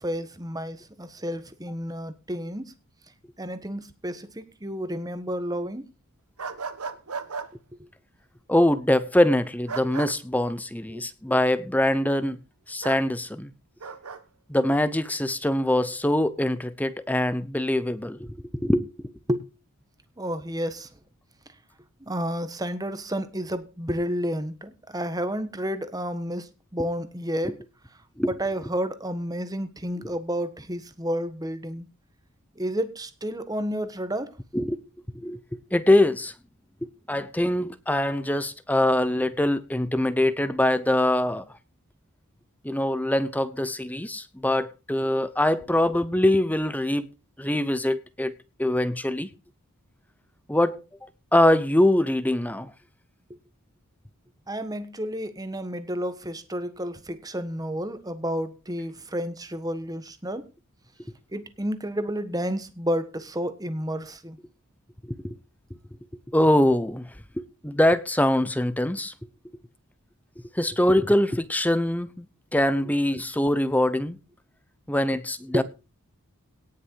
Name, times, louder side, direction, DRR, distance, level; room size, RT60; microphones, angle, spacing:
voice 1, 0.0-2.7 3.4-5.8 10.9-11.0 19.3-19.5 20.2-20.9 22.0-27.6 28.2-31.9 32.6-34.3 54.5-60.4 61.3-64.4 75.5-75.6, equal, 15° right, 1.4 m, -31 dB
sound 1, 6.4-7.5 9.7-10.1 12.8-13.0 13.8-14.2, right 5 dB, 80° right, 1.4 m, -34 dB
voice 2, 8.5-12.4 12.7-13.5 14.5-19.1 27.4-27.5 28.2-28.3 30.0-30.1 34.5-34.8 35.1-36.3 37.1-41.5 42.6-47.1 47.4-48.3 48.6-49.3 50.5-50.8 51.3-52.7 65.0-65.4 66.3-67.1 67.4-69.1 70.5-72.3 72.5-74.2 74.9-75.6, left 1 dB, 5° left, 0.8 m, -23 dB
18.0 x 6.5 x 4.7 m
head